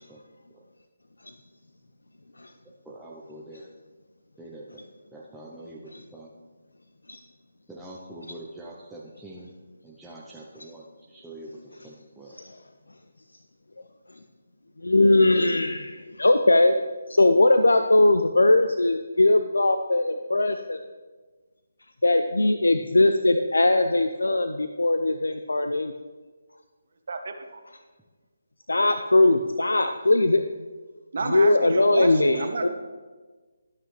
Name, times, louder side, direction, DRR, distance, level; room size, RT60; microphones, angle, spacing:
voice 1, 2.8-3.7 4.4-4.7 5.1-6.3 7.7-9.5 9.8-12.4, right 1 dB, 5° right, -6 dB, 0.7 m, -44 dB
voice 2, 14.8-16.7 17.1-20.8 22.0-25.9 28.7-30.4 31.2-32.7, left 2 dB, 85° left, 8 dB, 0.4 m, -20 dB
voice 3, 27.1-27.6 31.1-32.7, right 3 dB, 60° right, 6 dB, 1.1 m, -31 dB
12.5 x 5.7 x 3.2 m, 1.3 s
figure-of-eight pair, 155°, 0 cm